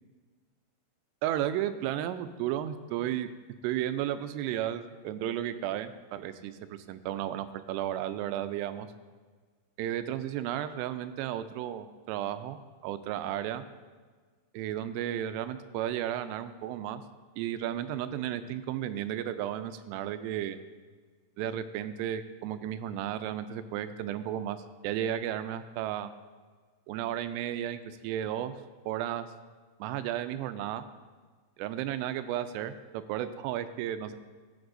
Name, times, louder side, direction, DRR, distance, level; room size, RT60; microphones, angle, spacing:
voice 1, 1.2-3.3 3.6-8.9 9.8-13.6 14.5-17.0 17.4-20.6 21.4-24.6 24.8-26.1 26.9-28.5 28.9-29.3 29.8-30.9 31.6-34.2, right 11 dB, 85° right, 11 dB, 2.6 m, -33 dB
15.5 x 8.8 x 2.6 m, 1.5 s
omnidirectional pair, 4.9 m